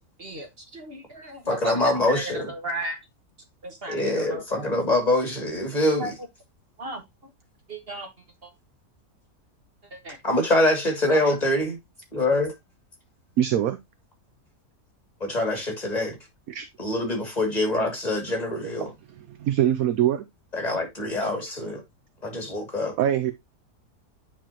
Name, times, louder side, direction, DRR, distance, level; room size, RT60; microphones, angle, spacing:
voice 1, 0.2-3.0 3.6-4.7 6.0-6.1 6.8-7.0 7.7-8.1 8.4-8.5 9.9-10.2 11.1-11.2, right 1 dB, 35° right, 1.8 m, -35 dB
voice 2, 1.5-2.5 3.9-6.1 10.2-11.8 12.1-12.5 15.2-16.2 16.8-18.9 20.5-21.8 22.2-22.9, left 1 dB, 25° left, 2.9 m, -24 dB
voice 3, 13.4-13.8 16.5-16.7 18.8-18.9 19.3-20.2 23.0-23.3, right 11 dB, 65° right, 1.0 m, -23 dB
9.1 x 4.9 x 2.9 m
omnidirectional pair, 1.7 m